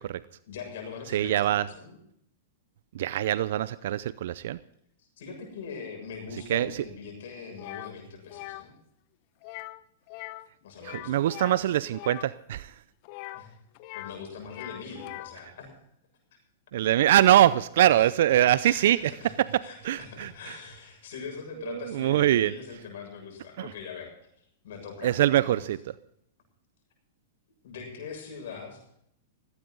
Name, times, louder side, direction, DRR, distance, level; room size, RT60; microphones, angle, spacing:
voice 1, 0.5-2.0 5.0-8.8 10.6-11.7 13.3-13.5 13.9-15.7 17.9-18.2 18.5-25.7 27.6-28.8, left 5 dB, 65° left, 3 dB, 7.1 m, -42 dB
voice 2, 1.1-1.6 2.9-4.6 6.5-6.7 10.8-12.7 16.7-19.0 19.5-20.3 21.9-22.5 25.0-25.8, right 12 dB, 65° right, 18 dB, 0.5 m, -23 dB
sound 1, 7.6-7.9 8.3-8.6 9.4-9.8 10.1-10.5 10.8-12.3 13.0-14.2 14.4-15.4, left 18 dB, 50° left, 0.9 m, -41 dB
17.5 x 16.5 x 3.9 m, 0.72 s
hypercardioid pair, 115°, 0 cm